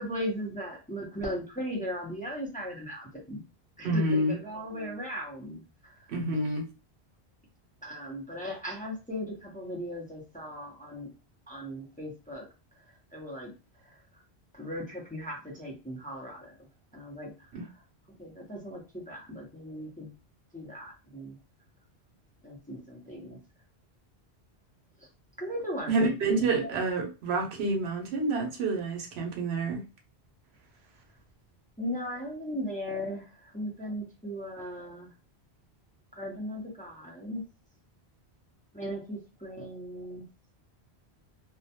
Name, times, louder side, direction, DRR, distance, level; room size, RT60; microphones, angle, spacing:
voice 1, 0.0-3.4 3.8-6.1 7.8-11.1 11.5-12.5 12.8-13.5 13.8-14.2 14.5-16.6 16.9-17.8 18.2-20.1 20.5-21.4 22.4-23.4 25.0-25.1 25.4-26.8 31.8-35.1 36.1-37.4 38.7-40.2, equal, 10° left, 0.5 m, -38 dB
voice 2, 3.8-4.3 6.1-6.7 17.5-17.6 25.9-29.8, right 2 dB, 80° right, 0.9 m, -28 dB
2.2 x 2.1 x 2.7 m
omnidirectional pair, 1.1 m